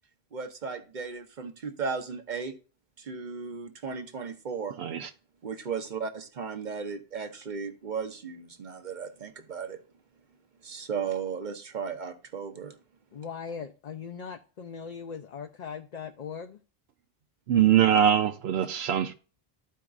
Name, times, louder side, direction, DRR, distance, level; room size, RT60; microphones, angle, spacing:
voice 1, 0.3-2.5 3.0-4.8 5.4-9.8 10.6-12.7, right 5 dB, 50° right, 0.9 m, -35 dB
voice 2, 4.8-5.1 17.5-19.1, right 10 dB, 85° right, 0.9 m, -22 dB
voice 3, 13.1-16.6, left 6 dB, 50° left, 0.6 m, -39 dB
13.0 x 4.7 x 2.3 m
omnidirectional pair, 1.0 m